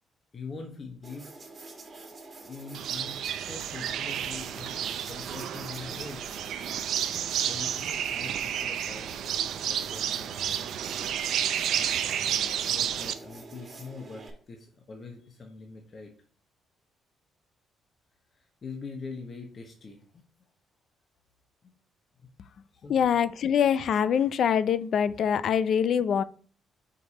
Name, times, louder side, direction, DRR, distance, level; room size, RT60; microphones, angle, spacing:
voice 1, 0.3-1.3 2.4-6.2 7.1-9.4 9.7-10.4 12.2-16.1 18.3-20.0 22.7-23.1, left 4 dB, 35° left, 2 dB, 1.0 m, -43 dB
sound 1, 1.0-14.3, right 3 dB, 30° right, 1.4 m, -47 dB
sound 2, 2.7-13.2, right 9 dB, 70° right, 0.5 m, -31 dB
voice 2, 22.9-26.2, left 8 dB, 60° left, 16 dB, 0.4 m, -24 dB
5.2 x 4.8 x 4.1 m, 0.43 s
cardioid pair, 120°, 0 cm